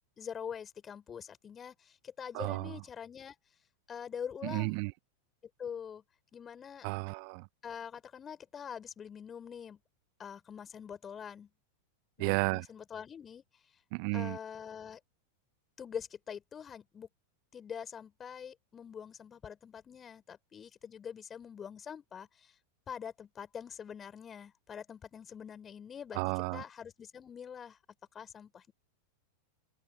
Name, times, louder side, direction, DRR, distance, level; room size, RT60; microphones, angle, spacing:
voice 1, 0.2-3.4 3.9-4.8 5.6-6.0 6.3-6.9 7.6-9.8 10.2-11.5 12.2-13.8 14.1-15.0 15.8-17.1 17.5-22.6 22.9-26.2 26.5-27.8 28.1-28.7, left 7 dB, 20° left, 5.8 m, -44 dB
voice 2, 2.3-2.7 4.4-4.9 6.8-7.4 12.2-12.6 13.9-14.4 26.2-26.6, right 40 dB or more, 45° right, 1.3 m, -32 dB
open air
figure-of-eight pair, 90°, 0 cm